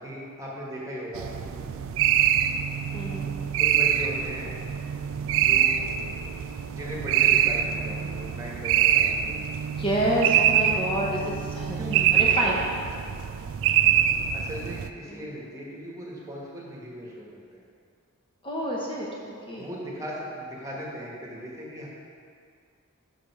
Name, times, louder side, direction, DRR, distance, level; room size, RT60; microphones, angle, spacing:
voice 1, 0.0-1.8 3.6-4.5 5.3-5.9 6.7-9.7 11.7-12.7 14.3-17.6 19.6-21.9, equal, 15° right, -5 dB, 1.3 m, -38 dB
sound 1, 1.1-14.9, right 9 dB, 60° right, 0.3 m, -24 dB
voice 2, 2.9-3.3 9.8-11.8 12.1-12.6 15.1-15.2 18.4-19.7, right 1 dB, 25° left, -5 dB, 0.8 m, -28 dB
6.3 x 5.1 x 5.8 m, 2.3 s
head